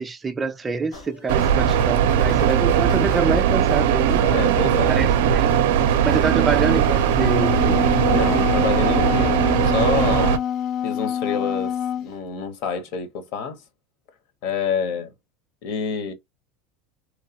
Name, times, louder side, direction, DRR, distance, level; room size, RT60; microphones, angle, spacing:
voice 1, 0.0-4.3 4.9-5.5 6.0-7.8, right 4 dB, 15° right, 0.3 m, -26 dB
sound 1, 0.9-9.7, left 1 dB, 80° left, 1.4 m, -37 dB
sound 2, 1.3-10.4, right 9 dB, 90° right, 0.4 m, -19 dB
voice 2, 4.2-5.0 5.8-5.9 8.1-9.4 9.6-10.4 10.8-11.8 12.0-13.6 14.4-15.1 15.6-16.1, left 6 dB, 60° left, 0.9 m, -27 dB
Wind instrument woodwind instrument, 6.9-12.1, left 9 dB, 45° left, 0.5 m, -26 dB
3.0 x 2.3 x 2.8 m
supercardioid pair, 155°, 0 cm